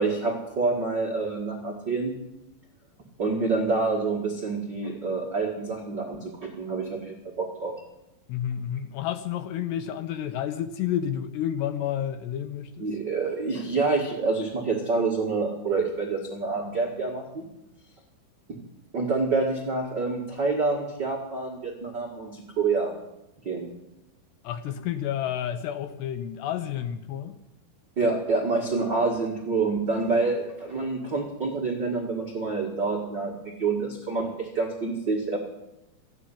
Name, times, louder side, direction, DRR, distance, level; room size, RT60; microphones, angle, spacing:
voice 1, 0.0-2.1 3.2-7.8 12.8-17.5 18.5-18.6 18.9-22.9 23.4-23.7 28.0-35.4, right 3 dB, 90° right, -1 dB, 0.9 m, -27 dB
voice 2, 8.3-12.9 24.4-27.4, left 10 dB, 75° left, 10 dB, 2.6 m, -30 dB
15.0 x 9.4 x 9.9 m, 0.89 s
omnidirectional pair, 5.6 m